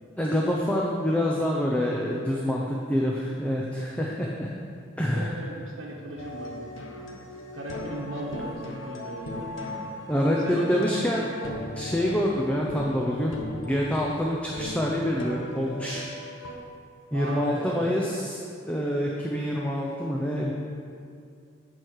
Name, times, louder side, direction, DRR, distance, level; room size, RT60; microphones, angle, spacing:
voice 1, 0.2-4.5 5.0-5.4 10.1-11.2 11.7-13.3 13.7-16.1 17.1-18.4 18.7-20.5, equal, 5° left, -2 dB, 0.6 m, -26 dB
voice 2, 5.1-6.7 7.0-7.2 7.5-9.8 10.4-10.9 17.1-17.9, right 1 dB, 75° right, -5 dB, 1.2 m, -37 dB
sound 1, 6.2-16.6, left 1 dB, 75° left, 1.0 m, -38 dB
10.0 x 4.7 x 6.4 m, 2.4 s
head